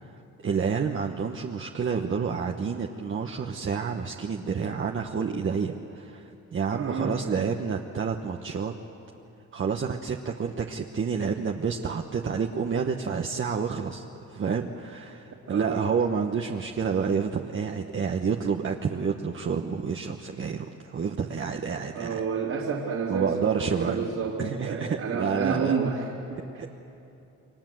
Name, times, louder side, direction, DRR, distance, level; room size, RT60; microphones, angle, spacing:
voice 1, 0.4-8.7 9.5-14.0 14.3-22.2 23.1-24.1 24.4-25.8 26.6-26.8, right 6 dB, 40° right, 2 dB, 1.2 m, -29 dB
voice 2, 6.7-7.3 15.5-15.9 21.9-26.6, right 5 dB, 65° right, -4 dB, 3.1 m, -30 dB
29.0 x 23.0 x 7.8 m, 2.9 s
cardioid pair, 90°, 30 cm